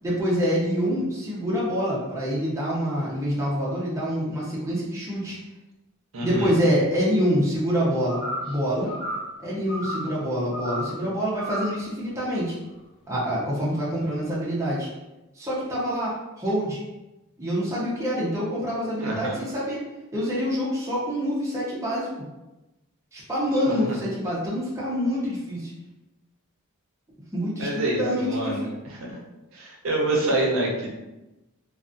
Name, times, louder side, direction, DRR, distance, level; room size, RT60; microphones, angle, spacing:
voice 1, 0.0-5.4 6.2-8.9 9.4-12.6 13.1-14.9 15.3-16.8 17.4-19.9 20.1-22.1 23.1-25.7 27.3-28.6, equal, 15° right, -7 dB, 0.5 m, -26 dB
voice 2, 6.1-6.5 19.0-19.4 23.7-24.0 27.6-29.2 29.5-30.9, right 2 dB, 65° right, -2 dB, 0.6 m, -27 dB
sound 1, 8.1-8.5 8.9-9.3 9.7-10.1 10.5-10.9 11.4-11.8, equal, 45° left, 1.0 m, -32 dB
2.4 x 2.3 x 2.4 m, 1.0 s
head